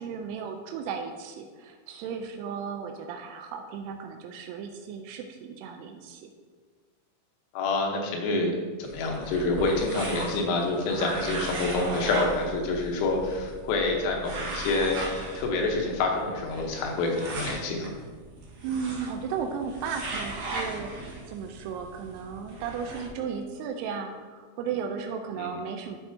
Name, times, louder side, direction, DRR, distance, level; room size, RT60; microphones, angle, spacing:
voice 1, 0.0-6.3 18.6-26.0, right 6 dB, 85° right, 4 dB, 2.7 m, -35 dB
voice 2, 7.5-8.5 8.8-15.0 15.4-17.9 25.3-25.6, left 3 dB, 80° left, 1 dB, 3.7 m, -27 dB
sound 1, 8.8-23.1, right 2 dB, 65° right, 2.0 m, -38 dB
13.0 x 5.4 x 2.7 m, 1.4 s
omnidirectional pair, 5.9 m